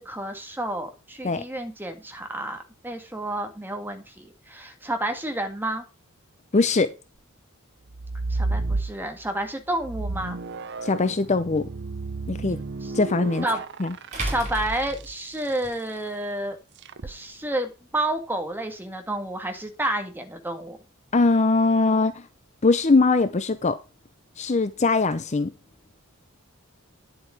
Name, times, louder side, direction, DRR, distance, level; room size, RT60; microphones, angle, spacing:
voice 1, 0.0-5.8 8.3-10.4 12.8-12.9 13.4-13.6 14.2-16.6 17.0-20.8, right 1 dB, 10° right, 1.9 m, -30 dB
voice 2, 6.5-6.9 10.8-11.7 12.3-12.6 12.9-13.5 13.8-13.9 21.1-22.3 22.6-23.8 24.4-25.5, left 3 dB, 35° left, 0.6 m, -21 dB
sound 1, 7.9-9.3 9.8-15.3 16.8-17.2, right 3 dB, 55° right, 0.7 m, -32 dB
sound 2, 10.3-10.4 13.0-13.1 14.1-15.7, right 1 dB, 35° right, 4.6 m, -32 dB
10.5 x 7.7 x 4.8 m
head